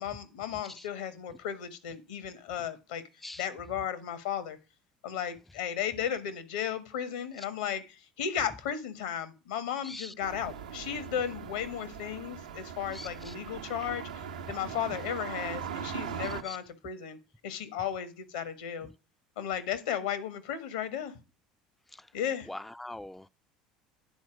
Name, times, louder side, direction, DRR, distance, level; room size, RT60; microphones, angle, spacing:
voice 1, 0.0-3.0 3.4-4.6 5.0-17.2 17.4-18.9 19.4-21.1 22.1-22.5, left 9 dB, 70° left, 1.3 m, -35 dB
voice 2, 9.8-10.1 12.9-13.3 16.4-16.6 21.9-22.1 22.5-23.3, left 1 dB, 5° left, 0.3 m, -43 dB
sound 1, 10.2-16.4, right 7 dB, 80° right, 0.7 m, -40 dB
9.6 x 4.4 x 6.1 m
hypercardioid pair, 70°, 4 cm